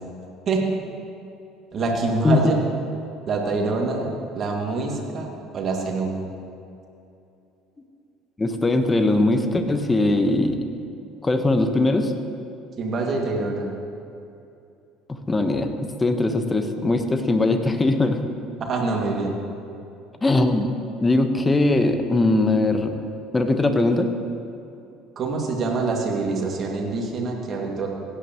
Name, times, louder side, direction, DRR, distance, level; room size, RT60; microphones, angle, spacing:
voice 1, 1.7-2.6 3.3-4.1 4.3-6.1 12.8-13.7 18.6-19.3 25.2-27.9, right 3 dB, 45° right, 0 dB, 2.1 m, -25 dB
voice 2, 8.4-10.6 11.2-12.1 15.1-18.2 20.2-20.7 21.0-22.9 23.3-24.1, left 2 dB, 20° left, 7 dB, 1.1 m, -20 dB
16.5 x 10.0 x 3.0 m, 2.7 s
hypercardioid pair, 65°, 0 cm